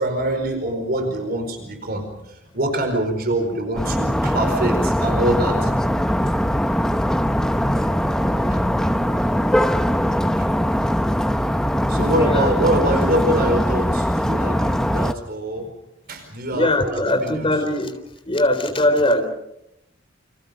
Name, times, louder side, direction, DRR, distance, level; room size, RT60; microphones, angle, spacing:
voice 1, 0.0-5.7 8.5-8.6 9.5-9.6 11.9-15.7 16.1-17.5, right 1 dB, 50° right, 6 dB, 4.8 m, -25 dB
sound 1, 3.8-15.1, equal, 5° left, 0.9 m, -21 dB
voice 2, 12.1-12.5 16.5-18.0 18.3-19.3, left 1 dB, 30° left, 6 dB, 3.7 m, -21 dB
29.0 x 26.5 x 5.3 m, 0.84 s
head